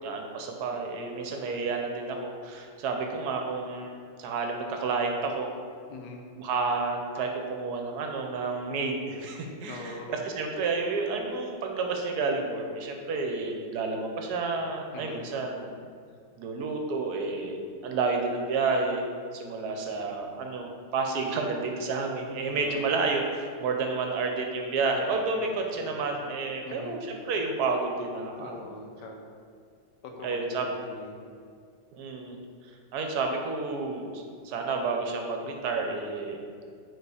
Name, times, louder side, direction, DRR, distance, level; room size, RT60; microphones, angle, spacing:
voice 1, 0.0-5.6 6.4-10.0 10.2-15.8 16.4-17.6 17.8-19.0 19.3-28.5 30.2-30.6 32.0-32.4 32.9-36.4, right 4 dB, 70° right, 3 dB, 1.1 m, -30 dB
voice 2, 5.9-6.2 9.7-10.2 14.9-15.3 22.4-22.9 25.4-26.0 26.6-27.0 28.4-29.2 30.0-31.2, left 2 dB, 80° left, 2 dB, 1.4 m, -43 dB
5.2 x 4.1 x 4.7 m, 2.2 s
omnidirectional pair, 1.8 m